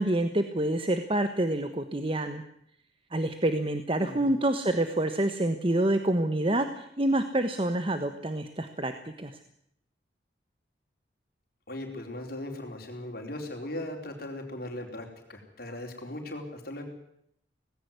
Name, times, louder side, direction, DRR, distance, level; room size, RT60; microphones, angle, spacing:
voice 1, 0.0-2.4 3.1-8.9 9.2-9.3, right 1 dB, 30° right, 8 dB, 1.2 m, -27 dB
voice 2, 4.0-4.3 11.7-16.8, left 1 dB, 55° left, 3 dB, 4.4 m, -38 dB
19.0 x 17.0 x 9.4 m, 0.72 s
head